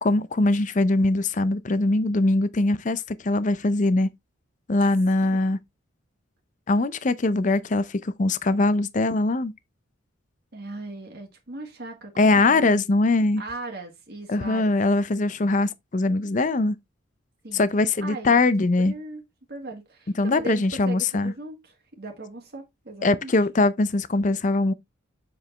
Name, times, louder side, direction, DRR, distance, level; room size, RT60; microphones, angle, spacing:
voice 1, 0.0-4.1 4.7-5.6 6.7-9.5 12.2-13.4 14.3-16.8 17.5-18.9 20.2-21.3 23.0-24.7, left 2 dB, 40° left, 0.5 m, -22 dB
voice 2, 10.5-12.8 13.4-14.7 17.4-17.6 18.0-18.4 18.8-19.2 19.5-23.3, right 2 dB, 55° right, 1.6 m, -38 dB
7.4 x 4.7 x 3.2 m
head